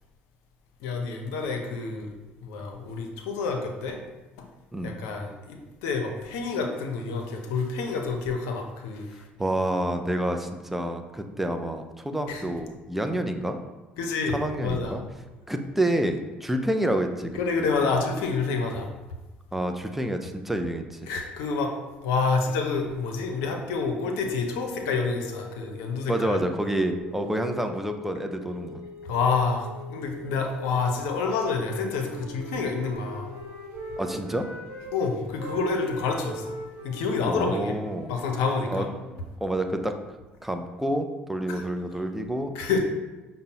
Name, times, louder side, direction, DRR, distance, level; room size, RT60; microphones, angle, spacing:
voice 1, 0.8-2.1 2.4-4.0 4.8-9.2 12.3-12.4 14.0-14.9 17.3-18.9 21.1-21.7 22.0-26.4 29.0-33.3 34.9-36.5 36.8-37.8 38.1-38.9 41.5-41.6 42.5-42.8, left 4 dB, 75° left, 3 dB, 0.5 m, -28 dB
voice 2, 9.4-13.6 14.3-15.0 15.5-17.3 17.6-17.7 19.5-21.0 26.1-28.8 34.0-34.5 37.3-38.1 38.7-38.9 39.4-39.9 40.4-42.5, right 1 dB, 5° right, 5 dB, 0.4 m, -28 dB
sound 1, 24.5-35.1, left 2 dB, 40° right, 1.1 m, -44 dB
Wind instrument woodwind instrument, 31.6-34.9 35.3-39.2, right 2 dB, 60° right, 0.6 m, -41 dB
5.1 x 2.0 x 2.8 m, 1.1 s
hypercardioid pair, 60°, 5 cm